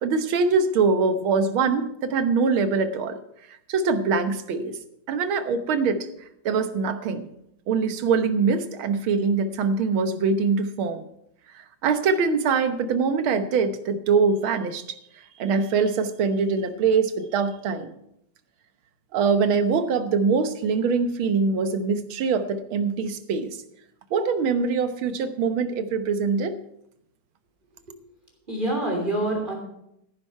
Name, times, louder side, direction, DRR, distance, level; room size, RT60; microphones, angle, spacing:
voice 1, 0.0-3.2 3.5-4.8 5.1-6.1 6.5-7.3 7.7-11.0 11.8-14.8 15.4-17.9 19.1-23.6 24.1-26.6, right 5 dB, 75° right, 9 dB, 1.9 m, -23 dB
voice 2, 28.5-29.5, right 1 dB, 25° right, 0 dB, 3.3 m, -26 dB
15.5 x 10.0 x 4.5 m, 0.77 s
omnidirectional pair, 2.3 m